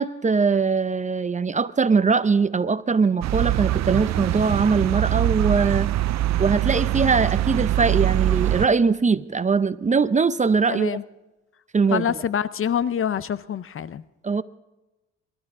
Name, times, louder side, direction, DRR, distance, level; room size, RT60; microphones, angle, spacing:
voice 1, 0.0-5.9 6.4-10.9 11.7-12.1 14.2-14.4, right 5 dB, 25° right, 14 dB, 0.6 m, -21 dB
sound 1, 3.2-8.7, right 13 dB, 65° right, 0.5 m, -23 dB
voice 2, 10.7-11.0 11.9-14.0, left 8 dB, 45° left, 16 dB, 0.6 m, -26 dB
22.0 x 13.0 x 3.7 m, 1.0 s
cardioid pair, 90°, 30 cm